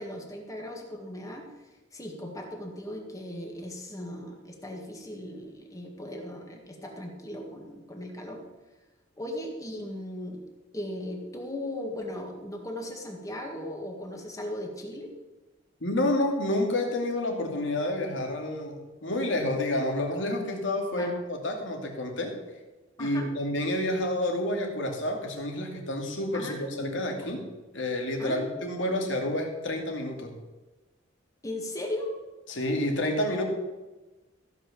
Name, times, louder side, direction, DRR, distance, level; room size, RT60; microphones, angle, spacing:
voice 1, 0.0-1.5 1.9-8.4 9.2-10.4 10.7-15.1 21.0-21.1 23.0-23.3 26.3-27.0 28.2-28.9 31.4-32.1, left 1 dB, 15° left, 1 dB, 1.9 m, -37 dB
voice 2, 15.8-22.4 23.0-27.5 27.7-30.4 32.5-33.4, left 1 dB, 75° left, 2 dB, 2.4 m, -29 dB
15.0 x 5.7 x 7.0 m, 1.2 s
head